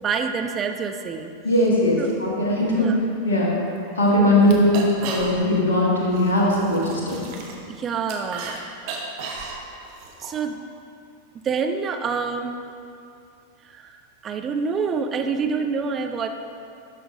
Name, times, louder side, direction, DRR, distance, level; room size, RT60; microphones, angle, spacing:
voice 1, 0.0-1.3 2.0-2.1 2.7-3.0 3.9-4.0 7.8-8.6 10.2-10.6 11.4-12.6 13.6-16.3, right 5 dB, 25° right, 6 dB, 0.5 m, -27 dB
voice 2, 1.4-2.9 3.2-3.6 4.0-7.2, left 1 dB, 65° left, -4 dB, 1.5 m, -20 dB
sound 1, 3.7-3.8 4.1-4.2 4.4-5.6 6.0-8.6 8.8-10.3, right 5 dB, 45° right, 0.9 m, -34 dB
11.0 x 5.7 x 2.7 m, 2.5 s
figure-of-eight pair, 90°, 0 cm